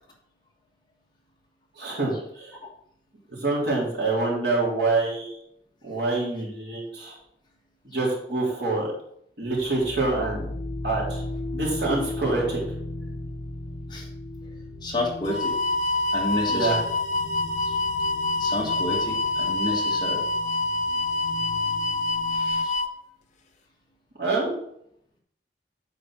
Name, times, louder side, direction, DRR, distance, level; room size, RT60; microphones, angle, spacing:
voice 1, 1.8-2.6 3.3-5.4 5.8-7.2 7.8-8.9 9.4-10.5 10.8-11.2 11.5-12.6 16.5-16.8 24.2-24.5, right 3 dB, 70° right, -4 dB, 3.5 m, -26 dB
sound 1, 9.5-22.6, left 1 dB, 70° left, 0.9 m, -37 dB
voice 2, 14.8-15.5 16.1-16.8 17.7-17.8 18.4-20.3 22.3-22.8, left 1 dB, 25° left, -1 dB, 1.6 m, -30 dB
sound 2, 15.3-22.9, left 2 dB, 40° left, 0.7 m, -26 dB
8.3 x 5.2 x 6.2 m, 0.71 s
head